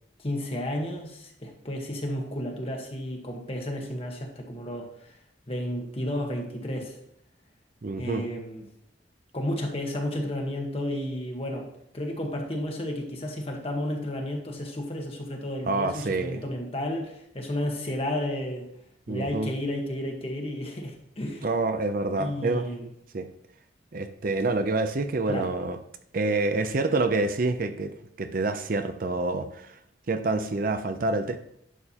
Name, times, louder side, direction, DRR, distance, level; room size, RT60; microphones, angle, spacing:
voice 1, 0.2-5.2 5.5-7.0 8.0-8.7 9.3-11.7 11.9-18.7 19.1-21.5 22.2-22.9 25.3-25.5, left 1 dB, 30° left, 1.2 m, -32 dB
voice 2, 7.8-8.2 15.7-16.4 19.1-19.5 21.4-22.7 23.1-23.3 23.9-25.8 26.1-29.8 30.1-31.4, right 3 dB, 50° right, 0.5 m, -27 dB
11.0 x 6.7 x 2.9 m
head